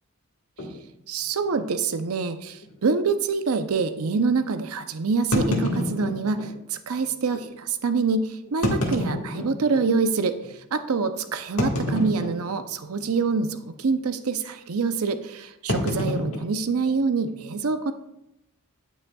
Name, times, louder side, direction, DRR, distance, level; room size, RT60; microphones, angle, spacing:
sound 1, 0.6-0.8 1.5-1.6 1.9-2.0 2.6-2.7 5.3-6.5 7.3-7.4 8.5-9.9 10.4-10.5 11.6-12.7 12.9-13.3 13.6-13.9 15.7-17.3, left 1 dB, 75° left, 1.6 m, -28 dB
voice 1, 1.1-17.9, right 4 dB, 75° right, 10 dB, 0.6 m, -26 dB
9.1 x 8.6 x 2.3 m, 0.86 s
head